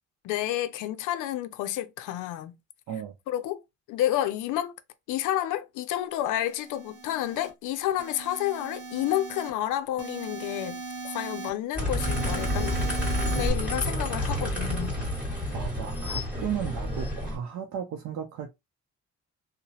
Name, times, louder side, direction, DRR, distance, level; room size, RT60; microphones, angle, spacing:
voice 1, 0.2-2.5 3.3-3.6 3.9-4.7 5.1-12.8 13.3-15.0, left 13 dB, 90° left, 0.5 m, -30 dB
sound 1, 6.4-7.5 8.0-9.5 10.0-11.5 12.0-13.5, right 4 dB, 50° right, 0.9 m, -38 dB
sound 2, 11.8-17.4, left 1 dB, 5° right, 1.6 m, -29 dB
voice 2, 15.5-18.5, right 8 dB, 70° right, 0.5 m, -34 dB
2.7 x 2.0 x 2.8 m
cardioid pair, 90°, 30 cm